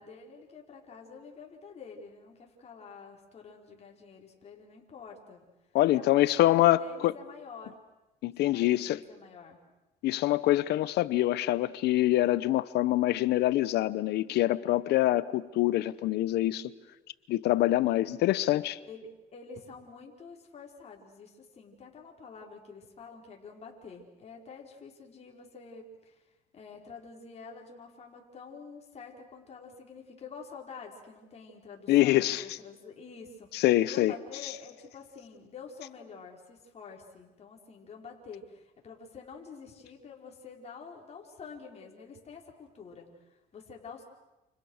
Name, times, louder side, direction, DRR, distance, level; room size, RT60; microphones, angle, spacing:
voice 1, 0.0-5.4 5.9-7.8 8.4-9.6 18.8-44.0, left 5 dB, 40° left, 5.2 m, -48 dB
voice 2, 5.7-7.1 8.2-9.0 10.0-16.7 17.3-18.8 31.9-32.4 33.5-34.1, left 15 dB, 75° left, 0.9 m, -25 dB
29.0 x 28.5 x 6.5 m
cardioid pair, 110°, 17 cm